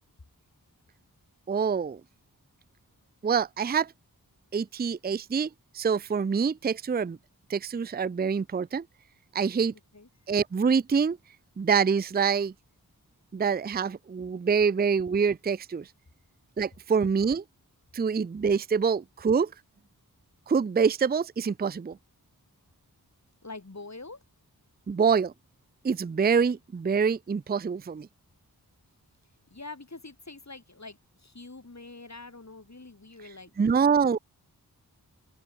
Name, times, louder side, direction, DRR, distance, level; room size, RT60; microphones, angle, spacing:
voice 1, 1.5-2.0 3.2-3.9 4.5-5.5 5.7-7.2 7.5-8.8 9.3-9.7 10.3-11.2 11.6-12.5 13.3-15.9 16.6-17.4 17.9-19.5 20.5-22.0 24.9-25.3 25.8-28.1 33.6-34.2, right 6 dB, 25° right, 0.4 m, -25 dB
voice 2, 23.4-24.2 29.5-34.1, left 3 dB, 45° left, 5.5 m, -45 dB
open air
wide cardioid pair, 45°, 38 cm